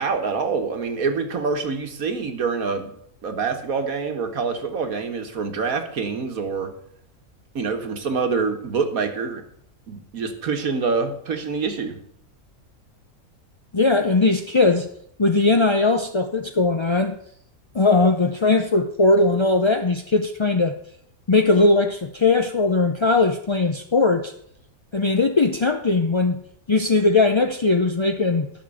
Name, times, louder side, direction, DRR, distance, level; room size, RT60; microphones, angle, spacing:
voice 1, 0.0-2.9 3.2-6.7 7.6-9.4 9.9-12.0, right 5 dB, 70° right, 5 dB, 1.8 m, -26 dB
voice 2, 13.7-14.9 15.2-17.2 17.7-20.8 21.3-24.3 24.9-26.4 26.7-28.5, left 3 dB, 40° left, 5 dB, 0.4 m, -19 dB
10.5 x 6.6 x 7.8 m, 0.68 s
omnidirectional pair, 1.6 m